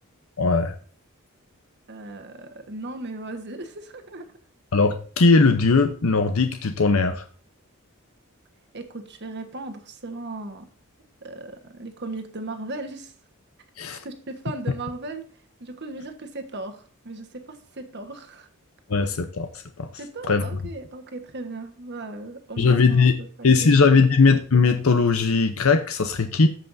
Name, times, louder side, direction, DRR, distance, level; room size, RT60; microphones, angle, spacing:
voice 1, 0.4-0.7 4.7-7.2 13.8-14.0 18.9-19.5 19.8-19.9 20.3-20.4 22.6-23.1 23.4-26.5, left 4 dB, 75° left, 0.7 m, -19 dB
voice 2, 1.9-4.3 8.7-10.7 11.2-13.1 14.0-15.2 15.6-18.5 20.0-24.0, right 2 dB, 55° right, 1.3 m, -37 dB
14.0 x 5.7 x 2.6 m
head